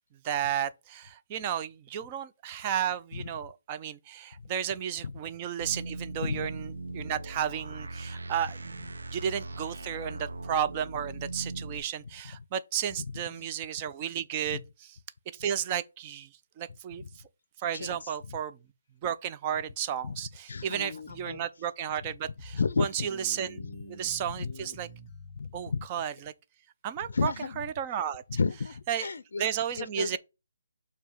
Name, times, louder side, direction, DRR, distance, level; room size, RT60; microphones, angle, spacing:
voice 1, 0.2-14.6 15.3-16.3 16.6-17.2 17.6-18.6 19.0-23.6 23.9-24.9 25.5-26.3 26.8-28.2 28.9-29.1 29.4-30.2, right 9 dB, 20° right, 0.4 m, -33 dB
sound 1, 5.6-11.8, right 2 dB, 80° right, 0.9 m, -39 dB
voice 2, 13.0-13.5 14.5-14.6 17.0-17.1 17.7-18.4 20.0-20.2 20.5-21.4 22.5-23.1 24.4-24.5 25.4-25.9 27.0-27.6 28.3-29.4 29.8-30.2, left 4 dB, 60° left, 0.5 m, -33 dB
sound 2, 20.7-21.4 22.4-22.7 23.1-25.4, left 2 dB, 15° left, 1.0 m, -46 dB
6.9 x 2.8 x 5.5 m
hypercardioid pair, 170°, 0 cm